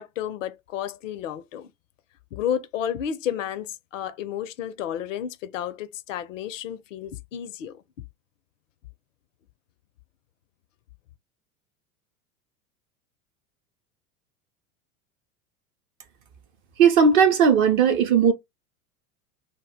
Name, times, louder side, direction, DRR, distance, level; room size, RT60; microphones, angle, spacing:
voice 1, 0.0-1.7 2.3-7.8, left 9 dB, 60° left, 0.5 m, -31 dB
voice 2, 16.8-18.3, right 6 dB, 30° right, 0.4 m, -17 dB
2.1 x 2.1 x 3.5 m
figure-of-eight pair, 80°, 45 cm